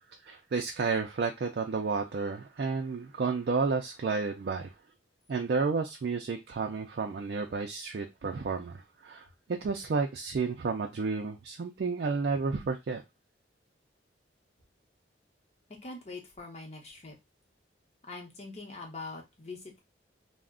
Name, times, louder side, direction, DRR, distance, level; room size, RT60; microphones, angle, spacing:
voice 1, 0.2-4.7 5.3-9.3 9.6-13.0, right 4 dB, 55° right, 0.4 m, -31 dB
voice 2, 15.8-17.2 18.0-19.8, left 3 dB, 35° left, 0.8 m, -43 dB
2.4 x 2.1 x 3.5 m
head